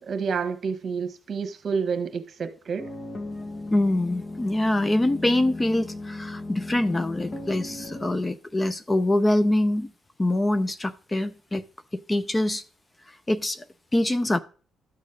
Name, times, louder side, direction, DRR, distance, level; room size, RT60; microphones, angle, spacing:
voice 1, 0.0-2.9, right 5 dB, 50° right, 1.4 m, -29 dB
sound 1, 2.8-8.2, left 2 dB, 35° left, 2.4 m, -36 dB
voice 2, 3.7-9.9 10.2-11.6 12.1-12.6 13.1-13.6 13.9-14.4, left 1 dB, 20° left, 0.6 m, -24 dB
12.0 x 6.3 x 3.9 m
cardioid pair, 90°, 0 cm